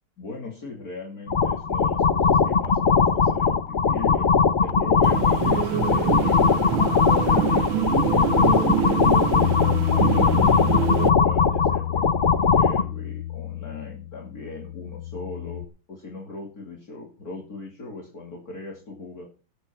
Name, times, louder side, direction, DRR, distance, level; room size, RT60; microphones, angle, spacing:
voice 1, 0.2-4.3 4.6-6.8 7.1-7.9 8.3-9.5 9.9-15.6 15.9-19.3, left 3 dB, 45° left, -2 dB, 3.2 m, -39 dB
sound 1, 1.3-12.8, left 5 dB, 85° left, 0.4 m, -20 dB
sound 2, 5.0-11.1, right 10 dB, 75° right, 1.5 m, -26 dB
Bass guitar, 9.4-15.7, left 13 dB, 65° left, 1.1 m, -29 dB
19.0 x 8.2 x 4.4 m, 0.34 s
omnidirectional pair, 2.3 m